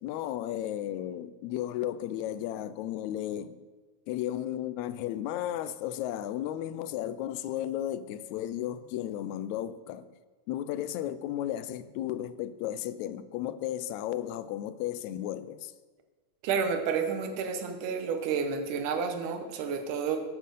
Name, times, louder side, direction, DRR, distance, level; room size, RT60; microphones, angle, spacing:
voice 1, 0.0-3.6 4.1-10.1 10.5-15.7, left 12 dB, 80° left, 1.8 m, -34 dB
voice 2, 16.4-20.2, right 6 dB, 80° right, 2.6 m, -30 dB
8.9 x 8.5 x 6.7 m
omnidirectional pair, 3.6 m